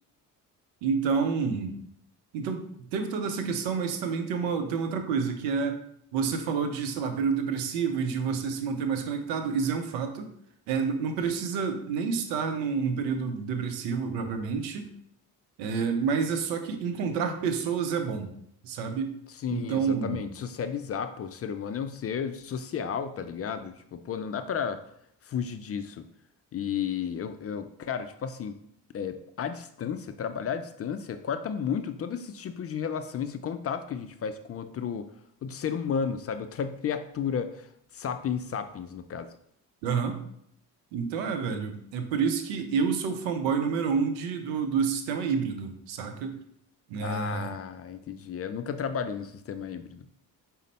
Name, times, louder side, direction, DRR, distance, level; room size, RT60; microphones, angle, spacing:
voice 1, 0.8-1.8 2.3-5.8 6.1-10.3 10.7-14.9 15.6-18.3 18.6-19.1 19.5-20.2 39.8-40.2 40.9-46.4 46.9-47.5, right 6 dB, 80° right, 7 dB, 0.7 m, -29 dB
voice 2, 19.4-24.8 25.2-26.0 26.5-28.6 28.9-35.1 35.4-39.3 47.0-50.1, left 7 dB, 35° left, 9 dB, 0.4 m, -33 dB
5.1 x 2.1 x 4.0 m, 0.71 s
hypercardioid pair, 45°, 45 cm